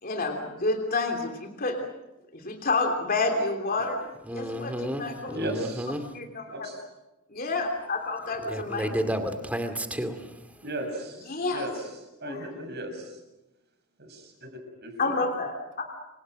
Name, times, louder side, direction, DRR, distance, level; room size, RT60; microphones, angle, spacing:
voice 1, 0.0-1.9 2.3-4.0 4.3-5.4 6.1-6.7 7.3-8.9 11.3-11.6 12.2-12.5 15.0-15.8, left 3 dB, 40° left, 3 dB, 3.2 m, -29 dB
voice 2, 4.3-6.1 8.5-10.6, equal, 5° right, 7 dB, 2.2 m, -32 dB
voice 3, 5.3-5.9 6.5-6.8 10.6-11.8 12.2-13.2 14.0-14.5 14.8-15.1, right 1 dB, 50° right, 4 dB, 6.7 m, -36 dB
28.5 x 25.0 x 6.4 m, 0.98 s
head